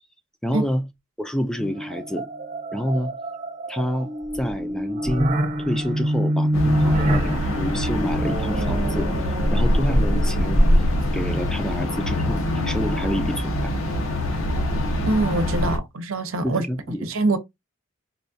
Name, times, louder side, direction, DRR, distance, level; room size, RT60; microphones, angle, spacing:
voice 1, 0.4-0.8 1.2-2.3 2.7-3.1 3.7-9.1 9.5-10.6 11.1-13.7 16.4-17.1, equal, 5° left, 0.4 m, -28 dB
sound 1, 1.6-10.7, right 1 dB, 40° right, 0.9 m, -27 dB
sound 2, 6.5-15.8, equal, 85° left, 0.9 m, -23 dB
voice 2, 15.1-16.6 17.0-17.4, right 2 dB, 85° right, 0.7 m, -23 dB
4.2 x 2.3 x 2.6 m
head